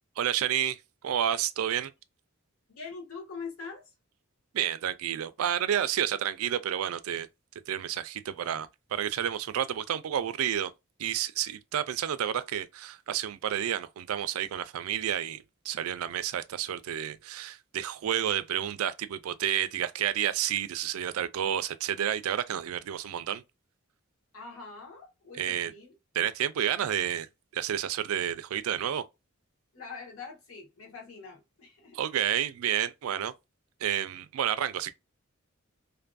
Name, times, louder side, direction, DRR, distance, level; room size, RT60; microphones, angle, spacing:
voice 1, 0.2-0.8 1.0-1.9 4.5-7.3 7.7-10.7 11.0-23.4 25.4-25.7 26.1-27.3 27.5-29.0 31.9-33.3 33.8-34.9, right 10 dB, 90° right, 0.4 m, -30 dB
voice 2, 2.7-3.9 24.3-25.9 29.7-32.0, left 4 dB, 80° left, 0.9 m, -43 dB
2.6 x 2.5 x 2.2 m
head